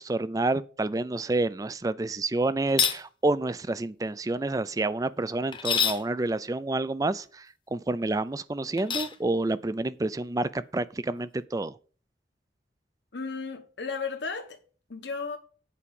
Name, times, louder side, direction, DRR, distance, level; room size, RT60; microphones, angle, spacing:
voice 1, 0.0-11.7, right 2 dB, 20° right, 0.4 m, -29 dB
sound 1, 2.7-3.0 5.5-6.0 8.8-9.2, left 6 dB, 30° left, 0.9 m, -26 dB
voice 2, 13.1-14.6 14.9-15.4, left 4 dB, 80° left, 1.1 m, -34 dB
8.4 x 4.9 x 7.0 m
head